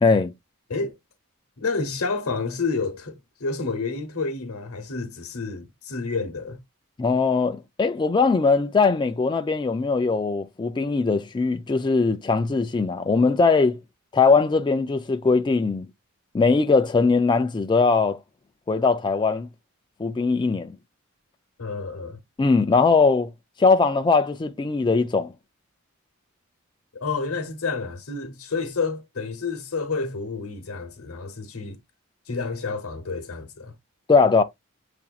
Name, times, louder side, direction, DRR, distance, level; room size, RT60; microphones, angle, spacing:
voice 1, 0.0-0.3 7.0-13.8 14.1-15.9 16.3-18.2 18.7-19.5 20.0-20.8 22.4-23.3 23.6-25.3 34.1-34.4, left 4 dB, 20° left, 0.3 m, -20 dB
voice 2, 1.6-3.1 3.4-6.6 21.6-22.2 26.9-31.8 32.3-33.7, left 4 dB, 85° left, 0.9 m, -29 dB
6.9 x 2.6 x 2.3 m
head